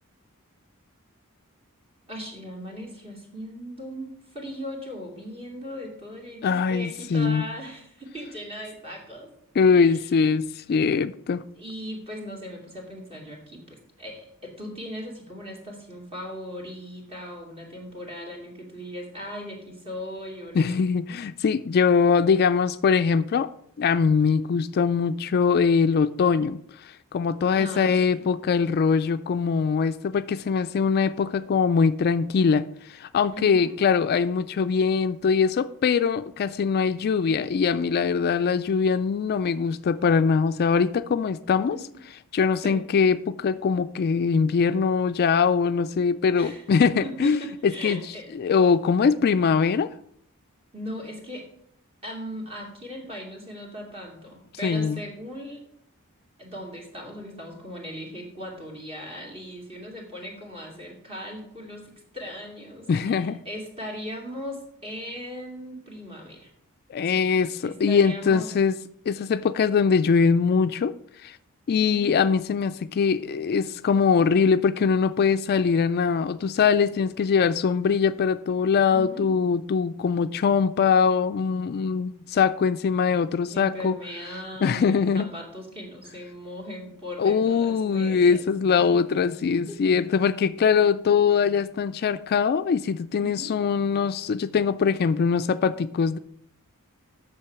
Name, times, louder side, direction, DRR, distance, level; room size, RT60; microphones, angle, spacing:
voice 1, 2.1-9.3 9.7-10.0 11.6-20.7 27.5-28.3 33.3-33.8 41.7-41.8 42.6-42.9 46.4-46.6 47.0-48.3 50.7-51.5 52.0-55.6 56.4-66.5 67.0-68.5 71.8-72.2 78.9-79.3 83.5-88.5 89.7-90.0 93.2-93.6, equal, 25° right, 2.6 m, -38 dB
voice 2, 6.4-7.4 9.6-11.4 20.5-23.5 23.8-41.8 42.3-48.0 48.3-49.9 54.6-55.0 62.9-63.4 66.9-68.8 69.1-70.9 71.2-71.4 71.7-84.0 84.6-85.3 87.2-96.2, left 5 dB, 45° left, 0.3 m, -22 dB
8.6 x 6.8 x 5.8 m
head